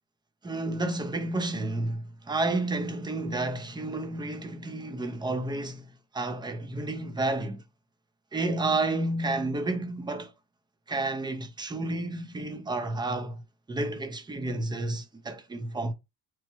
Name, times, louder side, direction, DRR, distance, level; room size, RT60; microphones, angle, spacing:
voice 1, 0.4-5.9 6.1-7.6 8.3-10.3 10.9-13.4 13.7-15.9, right 2 dB, 10° right, 0.4 m, -31 dB
3.0 x 2.2 x 3.0 m
supercardioid pair, 85°, 49 cm